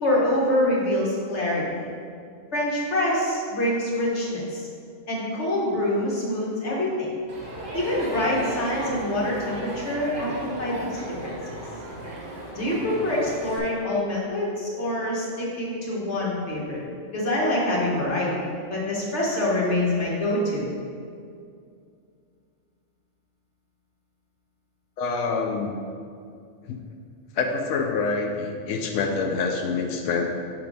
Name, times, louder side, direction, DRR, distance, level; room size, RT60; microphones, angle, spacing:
voice 1, 0.0-1.9 2.5-4.7 5.1-7.1 7.7-11.6 12.5-16.8 17.1-18.3 18.7-20.7, left 1 dB, 65° left, -5 dB, 1.7 m, -25 dB
Crowd, 7.3-13.6, right 1 dB, 45° right, 1.3 m, -35 dB
voice 2, 25.0-25.8 26.7-26.8 27.3-30.2, left 4 dB, 90° left, 2 dB, 0.9 m, -26 dB
6.0 x 4.5 x 5.3 m, 2.3 s
omnidirectional pair, 1.2 m